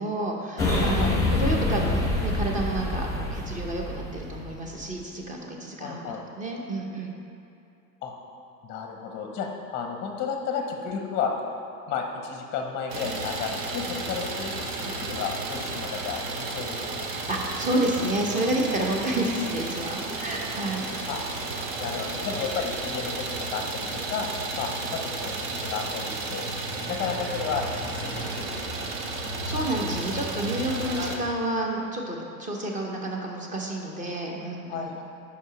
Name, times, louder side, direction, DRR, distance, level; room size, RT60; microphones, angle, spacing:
voice 1, 0.0-7.1 17.3-20.9 29.3-34.9, right 1 dB, 15° right, 0 dB, 0.7 m, -30 dB
sound 1, 0.6-4.8, left 2 dB, 5° left, 1.4 m, -26 dB
voice 2, 5.8-6.2 8.0-8.1 8.6-11.3 11.9-17.0 21.1-21.2 21.8-24.3 24.5-26.4 26.9-28.8 29.2-29.3 34.7-35.0, left 6 dB, 25° left, 2 dB, 0.7 m, -33 dB
Idling, 12.9-31.2, right 3 dB, 50° right, 0.9 m, -33 dB
5.2 x 5.0 x 5.0 m, 2.7 s
hypercardioid pair, 115°, 47 cm